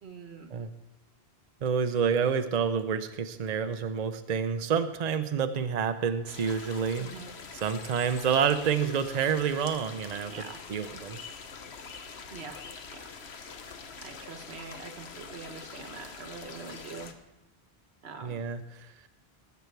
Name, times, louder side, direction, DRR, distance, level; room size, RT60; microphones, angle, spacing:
voice 1, 0.0-0.5 7.0-7.4 10.2-10.6 12.3-12.6 12.9-13.0 14.0-17.1 18.0-18.4, right 4 dB, 85° right, 6 dB, 1.5 m, -44 dB
voice 2, 1.6-7.1 7.6-10.3 10.7-11.2 18.2-18.9, right 7 dB, 45° right, 8 dB, 0.7 m, -28 dB
sound 1, 6.3-17.1, left 5 dB, 80° left, 1.2 m, -45 dB
19.5 x 8.2 x 4.6 m, 0.96 s
omnidirectional pair, 1.1 m